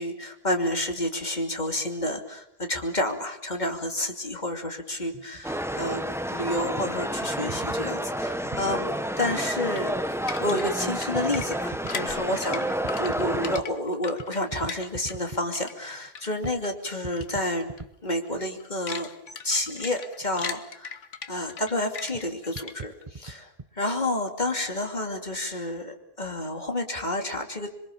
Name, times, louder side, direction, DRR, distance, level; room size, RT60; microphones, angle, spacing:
voice 1, 0.0-6.0 6.3-10.1 10.4-12.6 13.0-17.7 18.0-19.1 19.4-21.0 21.3-23.5 23.7-27.7, left 1 dB, 40° left, 5 dB, 2.8 m, -30 dB
sound 1, 5.1-5.5 6.0-6.1 6.8-6.9 7.5-8.8 10.0-10.1 10.5-10.6 11.1-11.9 12.7-13.7 14.2-15.5 16.1-16.2 16.4-16.6 16.9-17.9 18.3-18.4 20.2-20.4 22.1-22.2 22.5-23.7, right 4 dB, 30° right, 1.1 m, -40 dB
sound 2, 5.4-13.6, equal, ahead, 1.2 m, -30 dB
sound 3, 9.8-15.3 15.5-16.7 17.1-17.3 17.6-17.8 18.2-23.0, left 6 dB, 90° left, 1.8 m, -39 dB
27.0 x 23.5 x 7.2 m, 0.76 s
omnidirectional pair, 1.2 m